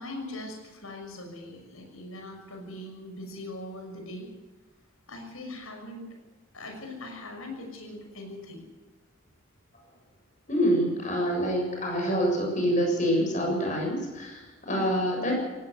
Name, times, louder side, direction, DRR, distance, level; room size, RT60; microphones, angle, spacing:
voice 1, 0.0-4.3 5.1-6.0 6.5-8.6 14.7-15.0, left 1 dB, 80° left, 4 dB, 6.4 m, -41 dB
voice 2, 10.5-15.4, equal, 35° left, 1 dB, 7.4 m, -26 dB
19.0 x 17.0 x 8.1 m, 1.2 s
head